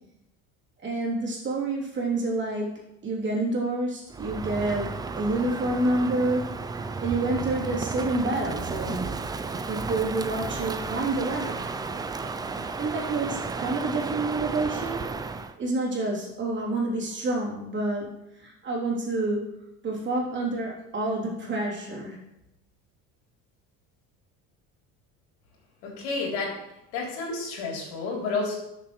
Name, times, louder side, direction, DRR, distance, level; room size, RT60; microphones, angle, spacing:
voice 1, 0.8-2.7 3.0-4.9 5.2-6.4 7.0-9.1 9.7-11.6 12.8-15.0 15.6-18.1 18.4-19.4 19.8-22.2, right 2 dB, 35° right, -3 dB, 3.2 m, -28 dB
Crow, 4.1-15.5, right 4 dB, 15° right, 0.4 m, -33 dB
voice 2, 25.8-26.5 26.9-28.5, left 3 dB, 90° left, -2 dB, 3.4 m, -30 dB
13.0 x 6.8 x 3.2 m, 0.87 s
cardioid pair, 130°, 31 cm